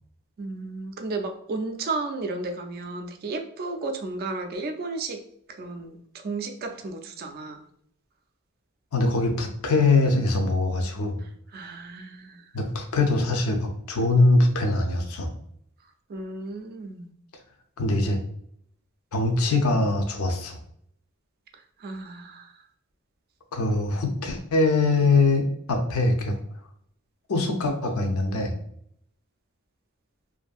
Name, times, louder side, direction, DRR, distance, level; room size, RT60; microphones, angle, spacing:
voice 1, 0.4-5.2 5.5-7.7 11.5-12.4 16.1-17.1 21.5-22.6, right 3 dB, 45° right, 6 dB, 0.3 m, -33 dB
voice 2, 8.9-11.2 12.5-15.3 17.8-18.2 19.1-20.6 23.5-26.4 27.3-28.5, left 2 dB, 80° left, 4 dB, 0.5 m, -23 dB
2.6 x 2.5 x 2.3 m, 0.68 s
head